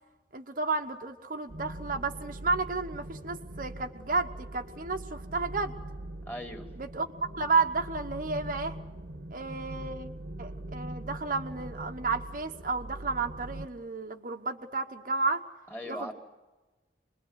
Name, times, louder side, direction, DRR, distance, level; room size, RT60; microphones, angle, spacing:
voice 1, 0.3-5.7 6.8-8.8 9.3-10.1 10.4-15.4 15.9-16.1, right 3 dB, 50° right, 4 dB, 1.1 m, -32 dB
sound 1, 1.5-13.7, right 1 dB, 65° right, 1.3 m, -42 dB
voice 2, 6.3-6.7 15.7-16.1, equal, 10° left, 4 dB, 2.4 m, -38 dB
26.5 x 21.5 x 8.0 m, 1.2 s
head